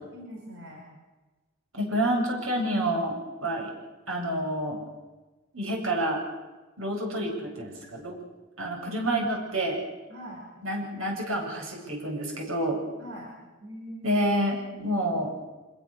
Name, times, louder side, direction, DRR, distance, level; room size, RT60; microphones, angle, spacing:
voice 1, 0.1-0.9 10.1-10.4 13.0-13.3 13.6-14.2 14.6-14.7, equal, 60° right, -1 dB, 5.7 m, -42 dB
voice 2, 1.7-3.7 4.1-4.8 5.5-6.2 6.8-8.2 8.6-9.8 10.6-12.8 14.0-15.3, right 1 dB, 90° right, 0 dB, 8.0 m, -28 dB
26.0 x 22.5 x 6.9 m, 1.2 s
head